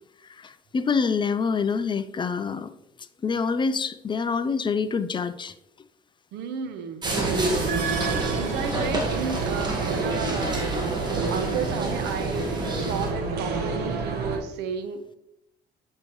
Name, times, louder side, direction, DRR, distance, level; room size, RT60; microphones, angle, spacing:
voice 1, 0.4-2.7 3.2-5.5, left 5 dB, 30° left, 12 dB, 0.5 m, -26 dB
voice 2, 6.3-7.1 8.3-10.7 11.1-12.5 12.7-15.2, right 6 dB, 85° right, 9 dB, 0.9 m, -33 dB
sound 1, 7.0-13.1, right 2 dB, 25° right, 1.8 m, -29 dB
sound 2, 7.0-14.4, right 3 dB, 70° right, 1.4 m, -29 dB
sound 3, 7.5-9.7, right 6 dB, 45° right, 0.8 m, -35 dB
8.7 x 6.5 x 3.1 m, 0.83 s
cardioid pair, 110°, 17 cm